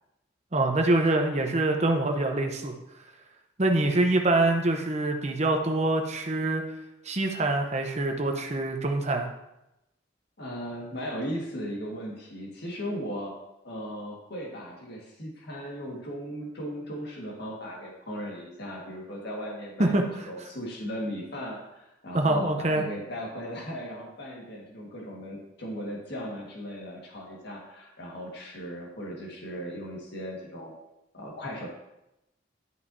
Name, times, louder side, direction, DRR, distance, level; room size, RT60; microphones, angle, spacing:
voice 1, 0.5-2.7 3.6-6.7 7.0-9.3 19.8-20.3 22.1-22.8, right 2 dB, 35° right, 3 dB, 0.8 m, -25 dB
voice 2, 10.4-13.3 13.6-19.9 20.3-30.7 31.1-31.7, equal, 60° left, -2 dB, 1.7 m, -37 dB
11.0 x 5.6 x 2.7 m, 0.88 s
head